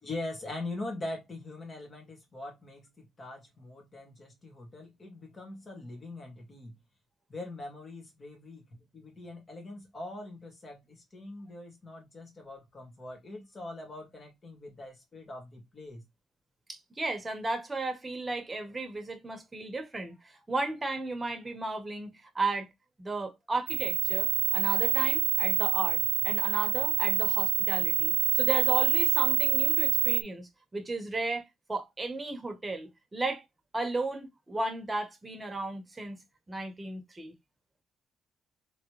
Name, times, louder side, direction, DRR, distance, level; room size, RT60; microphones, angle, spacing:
voice 1, 0.0-6.7 7.3-8.6 8.9-16.0, left 2 dB, 35° left, 2.2 m, -42 dB
voice 2, 16.7-22.7 23.0-26.0 26.2-33.4 33.7-36.2 36.5-37.3, right 2 dB, 20° right, 1.3 m, -34 dB
sound 1, 23.7-30.2, right 13 dB, 90° right, 0.4 m, -26 dB
3.9 x 3.6 x 3.2 m
cardioid pair, 90°, 0 cm